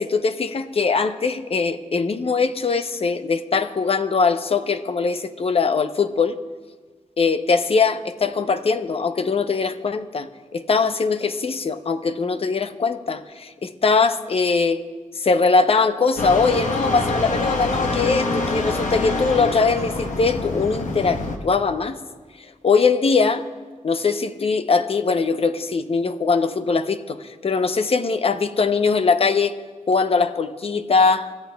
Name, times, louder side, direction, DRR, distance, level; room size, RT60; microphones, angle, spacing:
voice 1, 0.0-6.4 7.2-14.8 15.1-22.0 22.4-23.4 23.8-29.5 29.9-31.3, left 4 dB, 50° left, 9 dB, 0.7 m, -21 dB
sound 1, 16.2-21.4, left 2 dB, 80° left, 1.2 m, -25 dB
25.5 x 13.5 x 2.3 m, 1.5 s
wide cardioid pair, 95°, 13 cm